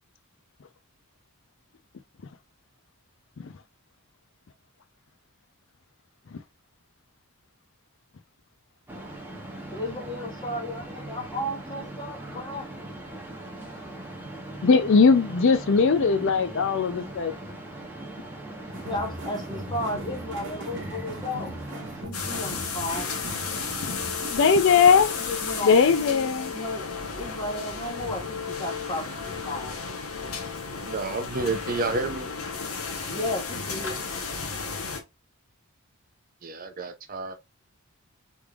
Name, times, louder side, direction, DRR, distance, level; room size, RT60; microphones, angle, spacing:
sound 1, 8.9-22.0, right 1 dB, 10° right, 0.9 m, -40 dB
voice 1, 9.7-12.8 18.8-21.5 22.0-23.1 25.1-25.8 26.5-26.9 27.1-29.7 33.1-34.0, left 1 dB, 20° left, 1.0 m, -34 dB
voice 2, 14.6-17.4 23.8-24.0 24.3-25.1 25.6-26.5, left 5 dB, 60° left, 0.4 m, -20 dB
sound 2, 18.7-24.3, right 1 dB, 60° right, 1.1 m, -39 dB
sound 3, 22.1-35.0, left 5 dB, 75° left, 1.0 m, -33 dB
voice 3, 30.8-32.3 36.4-37.3, right 3 dB, 40° right, 0.6 m, -30 dB
3.5 x 3.2 x 2.4 m
head